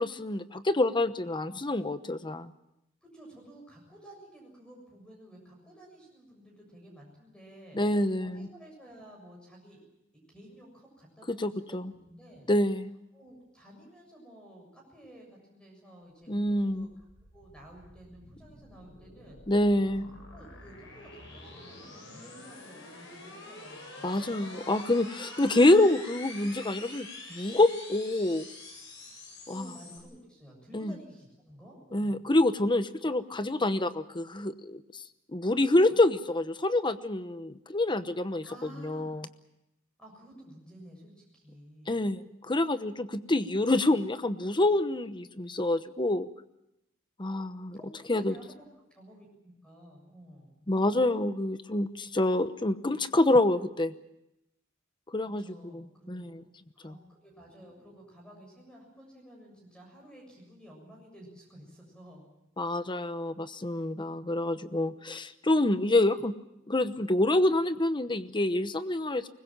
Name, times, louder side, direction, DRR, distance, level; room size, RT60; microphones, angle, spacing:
voice 1, 0.0-2.5 7.7-8.5 11.3-11.9 12.5-12.9 16.3-16.9 19.5-20.0 24.0-28.5 29.5-29.7 30.7-30.9 31.9-34.8 35.3-38.4 38.8-39.3 41.9-46.3 47.2-47.8 48.1-48.3 50.7-53.9 55.1-55.4 56.1-56.4 56.8-56.9 62.6-66.3 66.7-69.3, left 1 dB, 25° left, 11 dB, 1.0 m, -27 dB
voice 2, 3.0-7.8 8.2-9.8 10.1-12.5 13.1-16.9 17.3-19.4 19.9-20.1 20.3-24.6 29.5-32.2 38.4-39.1 40.0-42.0 47.7-50.5 55.2-56.3 56.7-62.3, right 1 dB, 5° left, 0 dB, 7.3 m, -52 dB
sound 1, 16.2-30.0, left 2 dB, 65° left, 8.0 m, -47 dB
24.5 x 21.0 x 7.4 m, 0.86 s
head